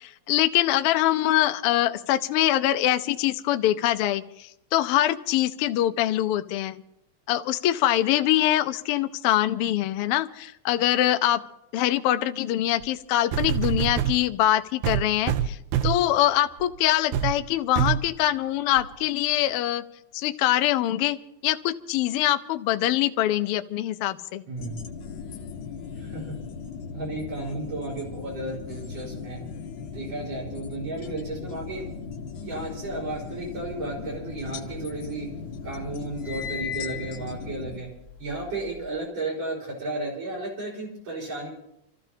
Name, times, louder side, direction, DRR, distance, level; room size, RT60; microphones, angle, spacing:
voice 1, 0.0-6.8 7.3-11.4 11.7-19.8 20.1-21.2 21.4-24.4, left 13 dB, 75° left, 9 dB, 1.3 m, -24 dB
sound 1, 12.8-12.9 13.3-14.2 14.8-16.1 16.6-16.8 17.1-17.4 17.8-18.1 18.8-18.9, right 9 dB, 90° right, 2.2 m, -25 dB
voice 2, 24.5-24.8 26.0-26.4 26.9-29.4 29.9-31.9 32.3-35.3 35.6-37.9 38.2-41.5, right 2 dB, 60° right, -3 dB, 5.8 m, -33 dB
sound 2, 24.6-37.8, left 5 dB, 60° left, 1.4 m, -38 dB
sound 3, 34.2-35.3 35.6-39.0, left 9 dB, 30° left, 1.7 m, -38 dB
28.5 x 14.0 x 2.8 m, 0.80 s
omnidirectional pair, 3.3 m